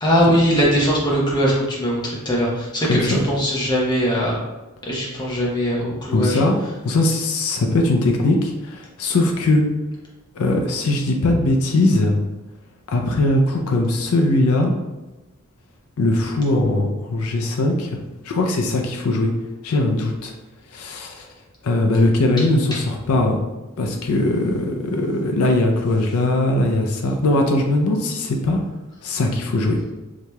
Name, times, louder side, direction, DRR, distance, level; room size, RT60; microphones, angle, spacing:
voice 1, 0.0-4.4 4.9-6.4, equal, 20° left, -5 dB, 0.9 m, -20 dB
voice 2, 2.9-3.3 6.1-6.6 6.8-9.6 10.3-12.2 12.9-14.7 16.0-18.0 18.2-19.3 19.6-20.3 20.7-21.3 21.6-23.4 23.8-28.6 29.0-29.8, left 2 dB, 80° left, 2 dB, 0.5 m, -20 dB
4.7 x 2.8 x 2.2 m, 1.1 s
head